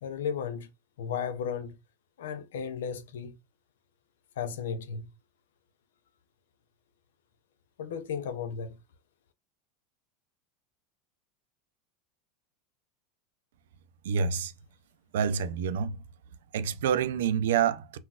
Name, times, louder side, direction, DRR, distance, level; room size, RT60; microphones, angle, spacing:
voice 1, 0.0-0.7 1.0-1.8 2.2-3.4 4.4-5.1 7.8-8.8, left 7 dB, 90° left, 0.4 m, -34 dB
voice 2, 14.0-14.5 15.1-16.0 16.5-18.0, right 7 dB, 85° right, 0.4 m, -27 dB
3.9 x 2.2 x 2.3 m
supercardioid pair, 115°, 0 cm